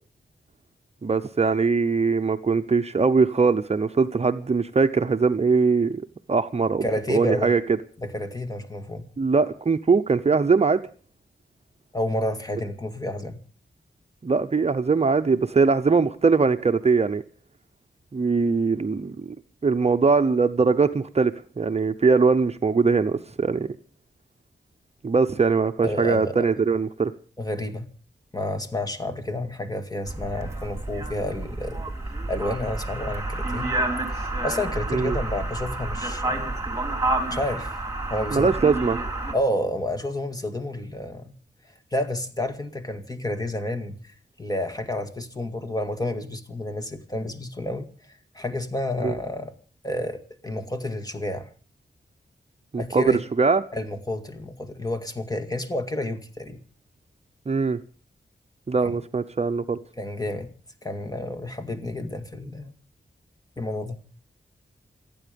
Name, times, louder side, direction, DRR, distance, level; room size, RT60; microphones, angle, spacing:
voice 1, 1.0-6.0 6.3-7.6 9.2-10.8 14.2-17.2 18.1-19.3 19.6-21.3 21.6-23.7 25.0-27.1 34.9-35.2 38.3-39.0 49.0-49.1 52.7-53.6 57.5-57.8 58.7-59.8, right 4 dB, 35° right, 8 dB, 0.8 m, -21 dB
voice 2, 6.8-7.5 8.0-9.0 11.9-13.4 25.8-26.5 27.4-27.8 28.3-31.8 32.3-33.7 34.1-36.5 37.3-37.7 38.1-38.5 39.3-41.3 41.9-44.0 44.4-47.9 48.3-49.5 49.8-51.5 52.8-53.2 53.7-56.6 58.8-58.9 60.0-60.5 60.8-62.7 63.6-64.0, left 1 dB, 20° left, 7 dB, 2.1 m, -30 dB
sound 1, 30.1-39.3, right 2 dB, 15° right, 3.5 m, -29 dB
28.0 x 9.4 x 5.2 m, 0.41 s
wide cardioid pair, 100°, 18 cm